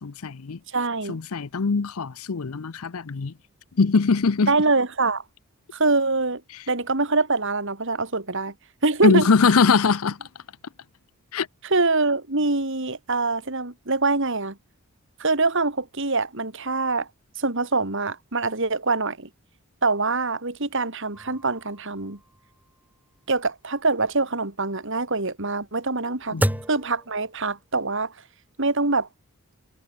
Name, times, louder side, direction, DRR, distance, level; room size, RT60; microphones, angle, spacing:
voice 1, 0.0-0.6 1.1-3.3 3.8-4.5 9.0-10.2 11.3-11.5 26.3-26.6, left 4 dB, 75° left, 0.7 m, -21 dB
voice 2, 0.7-1.2 4.5-5.2 5.7-6.4 6.7-8.5 8.8-9.3 11.6-14.6 15.2-17.1 17.4-19.3 19.8-22.2 23.3-26.4 26.7-28.1 28.6-29.1, right 3 dB, 55° right, 2.6 m, -24 dB
sound 1, 21.1-27.8, equal, 5° right, 3.0 m, -34 dB
head